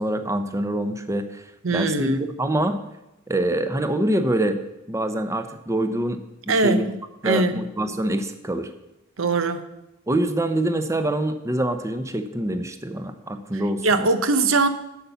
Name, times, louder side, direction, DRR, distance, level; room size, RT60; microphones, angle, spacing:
voice 1, 0.0-1.4 1.7-2.8 3.3-4.6 4.9-6.2 6.5-6.9 7.2-8.7 10.1-14.1, right 1 dB, 15° right, 0.7 m, -25 dB
voice 2, 1.6-2.2 6.5-6.9 7.2-7.7 9.2-9.7 13.8-14.7, right 3 dB, 75° right, 0.8 m, -21 dB
8.2 x 7.2 x 6.8 m
head